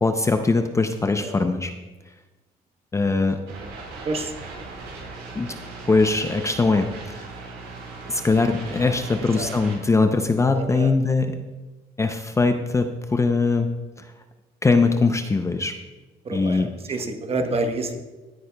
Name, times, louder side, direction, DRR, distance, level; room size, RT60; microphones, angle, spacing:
voice 1, 0.0-1.7 2.9-3.4 5.3-5.5 5.9-7.3 8.1-11.4 12.0-13.7 14.0-14.1 14.6-15.7 16.3-16.7, left 3 dB, 15° left, 7 dB, 0.5 m, -21 dB
sound 1, 3.5-9.8, right 3 dB, 85° right, 3.6 m, -38 dB
voice 2, 10.5-10.9 16.2-18.0, right 2 dB, 35° right, 6 dB, 1.1 m, -28 dB
16.0 x 8.4 x 2.2 m, 1.2 s
cardioid pair, 110°, 17 cm